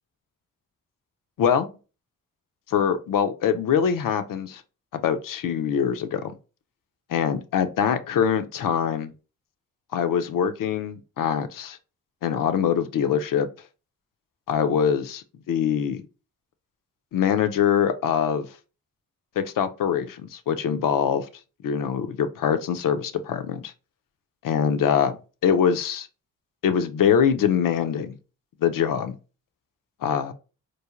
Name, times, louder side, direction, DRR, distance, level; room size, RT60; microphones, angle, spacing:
voice 1, 2.7-4.6 4.9-6.3 7.1-9.1 9.9-11.8 12.2-13.5 14.5-16.0 17.1-18.5 19.4-21.3 21.6-23.7 24.4-25.2 25.4-26.1 26.6-28.1 28.6-29.2 30.0-30.3, left 8 dB, 60° left, 0.5 m, -23 dB
3.1 x 2.1 x 2.4 m
supercardioid pair, 40°, 37 cm